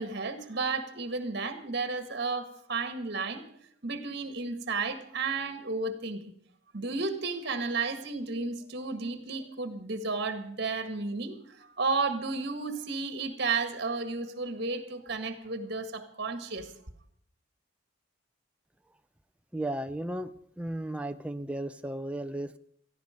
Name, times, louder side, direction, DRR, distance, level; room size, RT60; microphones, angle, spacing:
voice 1, 0.0-3.4 3.8-6.3 6.7-16.7, right 4 dB, 50° right, 9 dB, 1.8 m, -33 dB
voice 2, 19.5-20.3 20.6-22.6, right 1 dB, 5° right, 8 dB, 0.6 m, -34 dB
17.0 x 14.5 x 5.2 m, 0.65 s
head